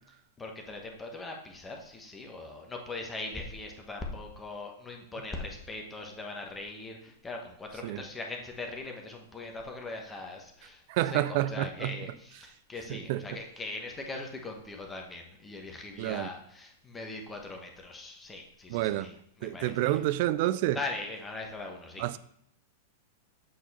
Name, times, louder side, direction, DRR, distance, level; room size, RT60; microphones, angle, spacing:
voice 1, 0.4-20.0 20.7-22.0, left 3 dB, 15° left, 1.2 m, -40 dB
voice 2, 10.9-11.9 12.9-13.2 16.0-16.3 18.7-19.1 19.4-20.8 22.0-22.2, right 15 dB, 55° right, 0.3 m, -29 dB
7.6 x 4.4 x 4.2 m
hypercardioid pair, 100°, 0 cm